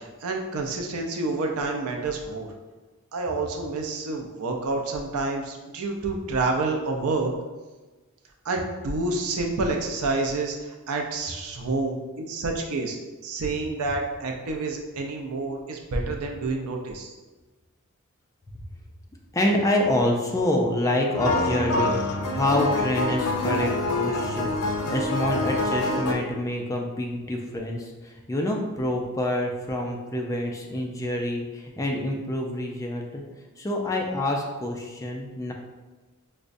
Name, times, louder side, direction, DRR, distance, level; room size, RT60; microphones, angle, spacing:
voice 1, 0.0-2.5 3.1-7.3 8.4-13.0 13.2-17.1, right 3 dB, 80° right, 2 dB, 0.5 m, -28 dB
voice 2, 19.3-24.5 24.9-33.2 33.6-35.5, left 1 dB, 15° left, 0 dB, 0.3 m, -27 dB
sound 1, 21.1-26.1, left 2 dB, 90° left, 0.5 m, -26 dB
4.8 x 2.1 x 2.5 m, 1.2 s
head